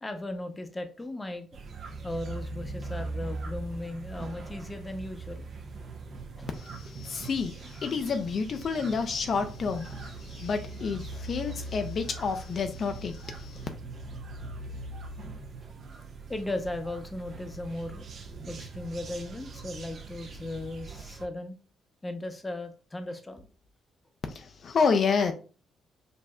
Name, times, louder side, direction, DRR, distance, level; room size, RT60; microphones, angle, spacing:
voice 1, 0.0-1.5 2.0-5.5 6.4-6.5 16.3-18.0 18.5-21.6 22.0-23.5, left 1 dB, 20° left, 0.7 m, -37 dB
sound 1, 1.5-21.3, right 3 dB, 55° right, 0.7 m, -41 dB
voice 2, 6.5-13.7 24.3-25.3, left 5 dB, 55° left, 0.4 m, -29 dB
5.3 x 2.6 x 2.2 m
cardioid pair, 90°, 0 cm